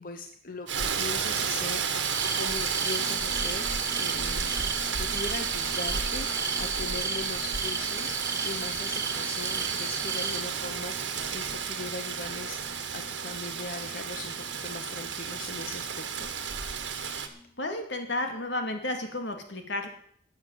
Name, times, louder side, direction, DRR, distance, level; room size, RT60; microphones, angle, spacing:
voice 1, 0.0-4.5 5.0-16.3, left 3 dB, 45° left, 6 dB, 0.9 m, -40 dB
Rain, 0.7-17.3, right 6 dB, 80° right, 1.7 m, -32 dB
sound 1, 2.0-10.4, right 4 dB, 15° right, 1.1 m, -34 dB
sound 2, 2.9-17.7, left 1 dB, 30° left, 4.6 m, -51 dB
voice 2, 17.6-19.9, left 2 dB, 75° left, 5 dB, 2.6 m, -32 dB
13.0 x 7.1 x 9.1 m, 0.64 s
head